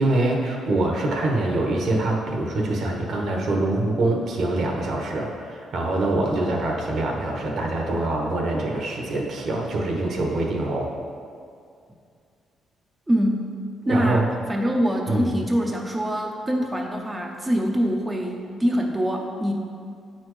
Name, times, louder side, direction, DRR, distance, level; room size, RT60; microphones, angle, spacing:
voice 1, 0.0-10.9 13.9-14.3 15.1-15.4, right 2 dB, 65° right, 0 dB, 1.1 m, -24 dB
voice 2, 13.1-13.5 13.9-19.5, equal, 15° right, 0 dB, 0.6 m, -24 dB
8.8 x 4.3 x 3.2 m, 2.3 s
cardioid pair, 90°, 0 cm